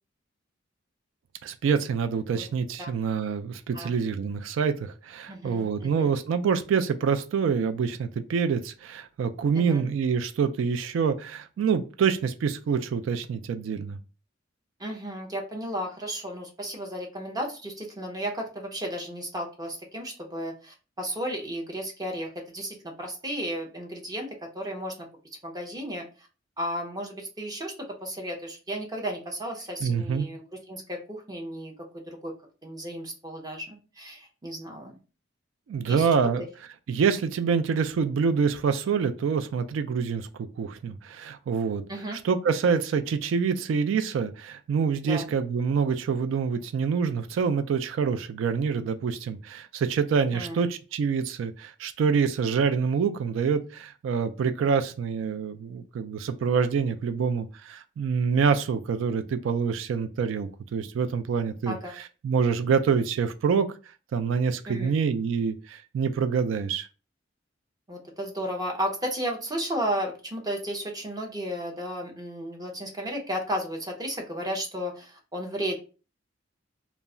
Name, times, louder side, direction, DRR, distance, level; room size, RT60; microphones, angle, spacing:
voice 1, 1.4-14.0 29.8-30.3 35.7-36.5 36.9-41.8 42.2-61.8 62.2-63.7 64.1-66.9, right 6 dB, 80° right, 0.3 m, -26 dB
voice 2, 5.3-6.1 9.5-9.8 14.8-24.3 24.5-24.9 25.4-26.3 26.6-32.3 32.6-35.0 35.9-36.1 41.9-42.2 45.0-45.2 50.3-50.6 61.7-61.9 64.7-65.0 67.9-75.8, equal, 20° right, 0.6 m, -34 dB
2.2 x 2.0 x 3.6 m
head